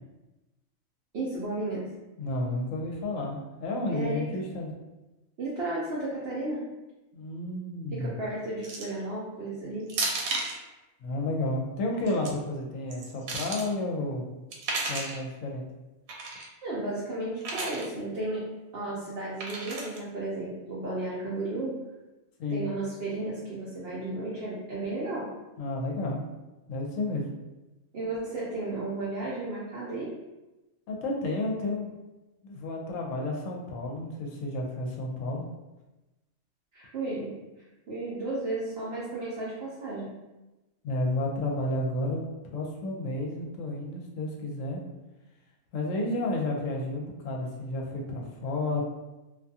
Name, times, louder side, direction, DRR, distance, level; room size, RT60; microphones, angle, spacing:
voice 1, 1.1-1.9 3.9-4.3 5.4-6.6 7.9-9.9 16.6-18.5 18.7-21.7 22.5-25.3 27.9-30.2 36.7-37.3 37.9-40.1, right 2 dB, 60° right, -6 dB, 0.7 m, -33 dB
voice 2, 2.2-4.7 7.1-8.1 11.0-14.2 14.9-15.6 22.4-22.7 25.6-26.2 26.7-27.3 30.9-31.9 32.4-35.4 40.8-42.2 42.5-44.8 45.7-48.8, left 2 dB, 75° left, 0 dB, 0.9 m, -31 dB
sound 1, 8.6-9.0 9.9-10.6 11.9-12.3 12.9-13.7 14.5-15.2 16.1-16.5 17.4-17.9 19.4-20.0, right 3 dB, 80° right, 1.0 m, -33 dB
2.5 x 2.3 x 2.6 m, 1.1 s
omnidirectional pair, 1.4 m